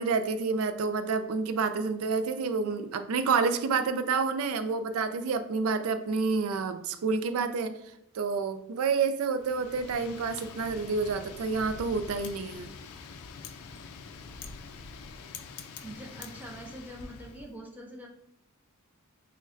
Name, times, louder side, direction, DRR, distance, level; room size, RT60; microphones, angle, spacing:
voice 1, 0.0-7.8 8.1-12.7, right 4 dB, 75° right, 10 dB, 0.4 m, -29 dB
Wind, 9.4-17.5, left 5 dB, 90° left, 0.4 m, -45 dB
voice 2, 15.8-18.1, right 1 dB, 5° right, 0 dB, 0.4 m, -44 dB
6.2 x 2.1 x 2.5 m, 0.83 s
head